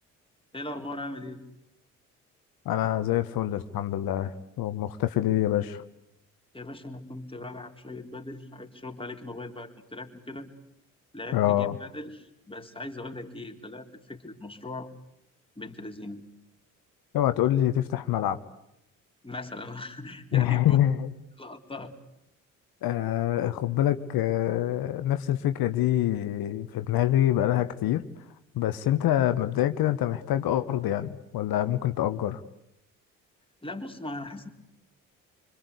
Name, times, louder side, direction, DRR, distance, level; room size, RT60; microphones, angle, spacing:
voice 1, 0.5-1.4 6.5-10.5 11.1-14.9 15.6-16.2 19.2-20.8 21.4-21.9 33.6-34.5, left 2 dB, 15° left, 3 dB, 3.9 m, -39 dB
voice 2, 2.6-5.8 11.3-11.8 17.1-18.4 20.3-21.1 22.8-28.1 28.5-32.4, left 12 dB, 60° left, 10 dB, 1.3 m, -25 dB
25.5 x 25.5 x 8.3 m, 0.80 s
hypercardioid pair, 50°, 41 cm